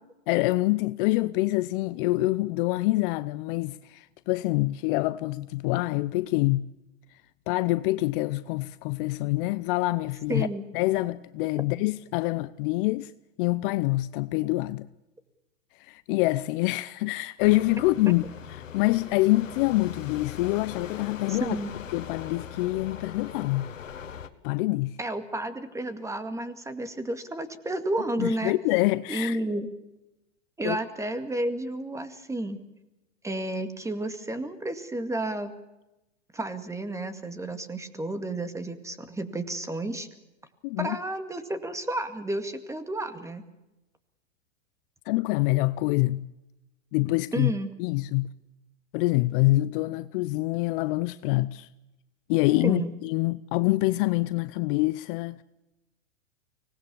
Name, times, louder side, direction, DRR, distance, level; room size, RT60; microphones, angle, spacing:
voice 1, 0.3-6.7 7.5-10.5 10.7-13.1 13.4-14.9 15.8-18.2 18.7-21.6 21.9-23.7 24.4-25.0 28.2-29.4 30.6-30.8 40.6-41.0 45.1-46.3 46.9-47.5 47.8-48.3 48.9-51.7 52.3-55.4, left 19 dB, 45° left, 0.7 m, -26 dB
voice 2, 10.3-10.6 18.1-18.2 21.3-21.7 25.0-28.5 29.1-29.7 30.6-32.6 33.2-35.5 36.3-40.1 40.8-43.4 47.3-47.7 52.6-52.9, right 1 dB, 10° right, 2.1 m, -31 dB
sound 1, 17.4-24.3, left 8 dB, 90° left, 1.6 m, -40 dB
25.0 x 19.5 x 7.0 m
hypercardioid pair, 110°, 38 cm